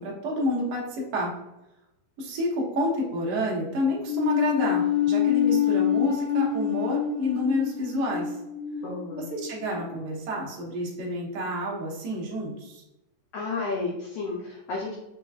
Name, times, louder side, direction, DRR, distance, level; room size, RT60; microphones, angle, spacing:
voice 1, 0.0-1.3 2.2-8.3 9.2-12.8, left 1 dB, 60° right, -3 dB, 1.6 m, -29 dB
sound 1, 4.0-10.4, left 10 dB, 40° left, 0.8 m, -26 dB
voice 2, 8.8-9.3 13.3-14.9, left 3 dB, 85° left, -2 dB, 1.4 m, -32 dB
5.6 x 3.0 x 2.3 m, 0.93 s
omnidirectional pair, 3.7 m